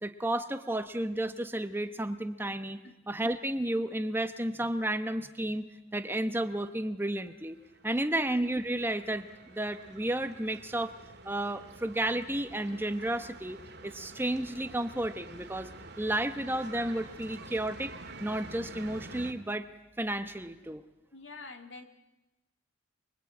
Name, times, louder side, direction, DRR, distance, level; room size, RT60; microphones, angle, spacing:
voice 1, 0.0-5.7 5.9-7.6 7.8-10.9 11.2-13.6 13.8-15.7 16.0-17.9 18.2-19.7 20.0-20.8, right 1 dB, 10° right, 9 dB, 1.0 m, -32 dB
sound 1, 7.3-19.3, right 2 dB, 60° right, 2.2 m, -48 dB
voice 2, 21.1-21.8, left 3 dB, 75° left, 6 dB, 2.4 m, -46 dB
24.5 x 23.0 x 8.6 m, 0.96 s
head